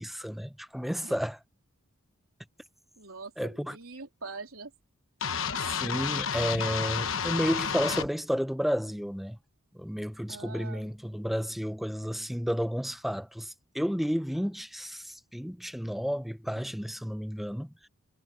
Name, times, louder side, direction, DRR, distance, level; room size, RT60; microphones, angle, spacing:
voice 1, 0.0-1.4 3.4-3.8 5.6-9.4 9.7-17.9, equal, ahead, 0.7 m, -32 dB
voice 2, 3.0-4.7 10.3-10.9, right 4 dB, 85° right, 3.6 m, -43 dB
sound 1, 5.2-8.1, left 6 dB, 75° left, 1.1 m, -31 dB
head